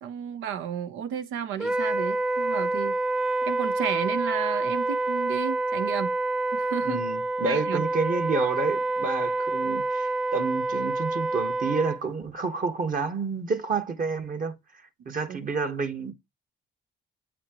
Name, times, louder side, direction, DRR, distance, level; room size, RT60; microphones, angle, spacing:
voice 1, 0.0-3.0 3.5-6.1 6.6-7.0 7.4-7.8 15.3-15.4, right 8 dB, 90° right, 0.8 m, -32 dB
Wind instrument woodwind instrument, 1.6-12.0, right 2 dB, 5° right, 0.3 m, -27 dB
voice 2, 6.8-14.6 15.0-16.1, right 4 dB, 45° right, 1.2 m, -29 dB
7.7 x 4.2 x 2.9 m
cardioid pair, 90°, 20 cm